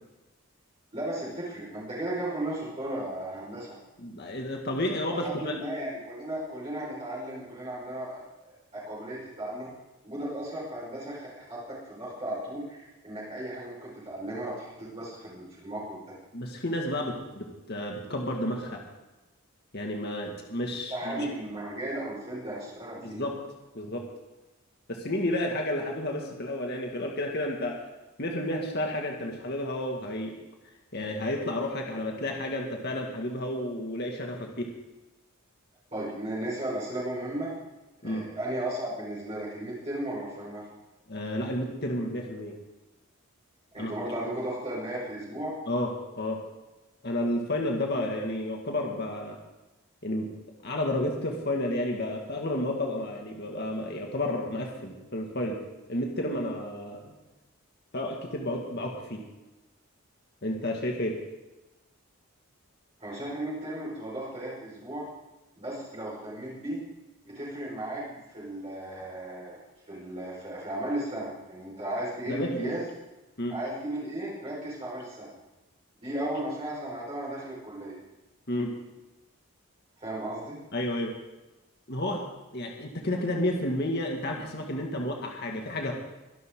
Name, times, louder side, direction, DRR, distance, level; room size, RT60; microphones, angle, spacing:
voice 1, 0.9-3.8 5.1-9.7 10.0-16.1 20.9-23.2 35.9-37.5 38.0-40.7 43.7-45.5 63.0-65.0 65.6-66.8 67.2-69.6 69.9-72.9 73.5-75.3 76.0-78.0 80.0-80.6, right 1 dB, 30° right, -8 dB, 5.2 m, -35 dB
voice 2, 4.0-5.6 16.3-18.8 19.7-21.3 23.0-23.4 23.7-24.0 24.9-27.8 28.2-30.4 30.9-34.7 38.0-38.3 41.1-42.6 43.8-43.9 45.7-45.9 46.2-46.4 47.0-49.4 50.0-50.3 50.6-55.6 55.9-57.1 57.9-59.2 60.4-61.2 72.3-72.7 73.4-73.6 78.5-78.7 80.7-81.1 81.9-82.2 82.5-85.9, left 1 dB, 50° left, 1 dB, 2.2 m, -31 dB
24.0 x 11.5 x 3.9 m, 1.1 s
head